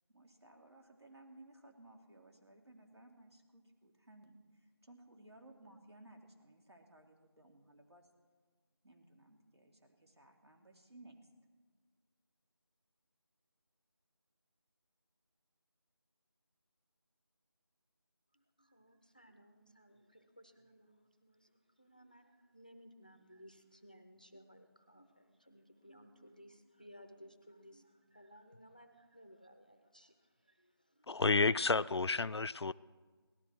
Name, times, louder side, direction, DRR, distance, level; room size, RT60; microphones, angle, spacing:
voice 1, 0.1-8.1 8.8-11.2, right 1 dB, 85° right, 2.7 m, -60 dB
voice 2, 18.3-31.6, equal, 20° left, 0.5 m, -60 dB
voice 3, 31.1-32.7, left 3 dB, 85° left, 0.4 m, -31 dB
18.0 x 12.5 x 4.5 m
figure-of-eight pair, 175°, 13 cm